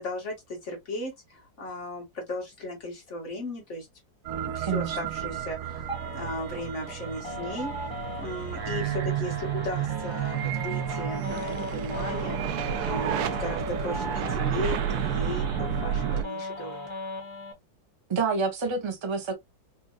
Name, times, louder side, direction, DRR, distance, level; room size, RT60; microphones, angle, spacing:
voice 1, 0.0-3.9 4.4-7.7 8.2-16.8, left 1 dB, 40° left, 2.0 m, -36 dB
sound 1, 4.3-16.2, right 9 dB, 70° right, 1.0 m, -31 dB
voice 2, 4.6-5.0 18.1-19.3, right 5 dB, 35° right, 0.4 m, -28 dB
sound 2, 5.9-17.5, left 1 dB, 15° right, 1.4 m, -38 dB
4.3 x 2.7 x 2.3 m
omnidirectional pair, 2.0 m